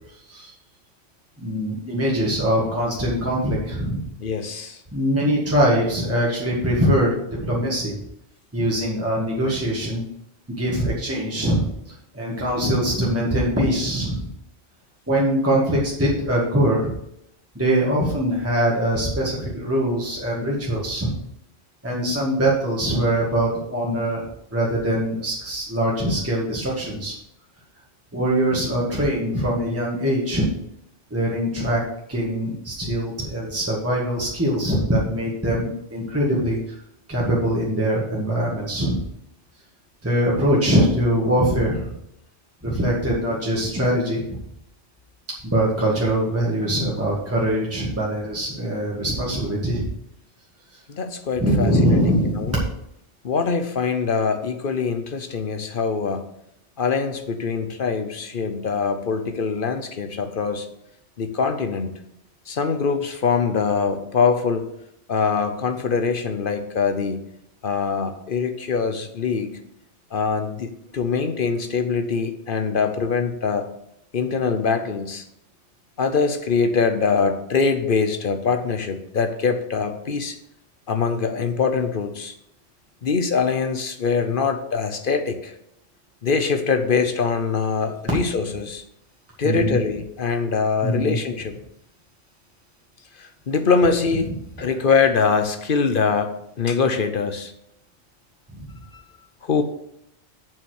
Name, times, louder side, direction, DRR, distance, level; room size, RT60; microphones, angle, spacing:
voice 1, 0.1-0.5 1.4-4.0 4.9-8.0 8.5-10.0 10.5-14.3 15.1-16.9 17.6-21.1 21.8-24.3 24.5-27.1 28.1-30.5 31.1-31.8 32.1-36.8 37.1-39.0 40.0-42.0 42.6-44.2 45.4-49.9 51.4-52.5 89.4-89.8 90.8-91.2 98.5-98.7, right 1 dB, 10° right, -5 dB, 1.7 m, -22 dB
voice 2, 4.2-4.8 50.9-52.6 53.2-56.2 56.8-60.7 61.2-61.9 62.5-64.6 65.1-67.2 67.6-69.5 70.1-73.7 74.1-75.2 76.0-80.4 80.9-82.4 83.0-85.5 86.2-88.8 89.4-91.6 93.1-94.3 94.6-97.5 98.9-99.1 99.4-99.6, left 5 dB, 50° left, 8 dB, 0.9 m, -23 dB
7.1 x 5.7 x 6.4 m, 0.78 s
omnidirectional pair, 1.2 m